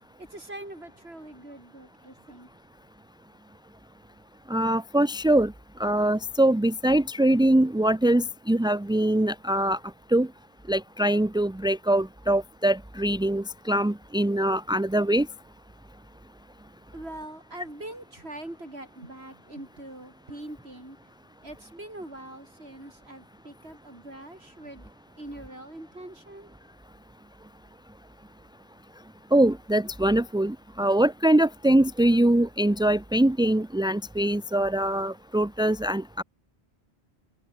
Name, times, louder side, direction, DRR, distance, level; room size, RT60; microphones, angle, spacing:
voice 1, 0.2-2.5 16.9-21.1 21.4-26.6, right 1 dB, 75° right, 7.3 m, -43 dB
voice 2, 4.5-5.5 5.8-9.8 10.1-10.3 10.7-15.3 29.3-36.2, right 1 dB, 5° right, 0.4 m, -23 dB
omnidirectional pair, 1.1 m